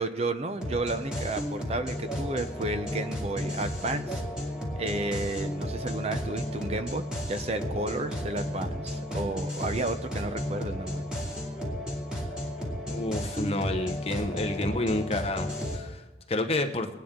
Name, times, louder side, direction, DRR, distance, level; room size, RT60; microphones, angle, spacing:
voice 1, 0.0-4.2 4.8-7.0 7.3-11.0, right 2 dB, 35° right, 10 dB, 0.6 m, -32 dB
sound 1, 0.6-15.8, equal, 5° right, 2.6 m, -33 dB
voice 2, 12.9-16.9, left 2 dB, 35° left, 6 dB, 0.9 m, -30 dB
21.5 x 9.5 x 3.7 m, 1.1 s
head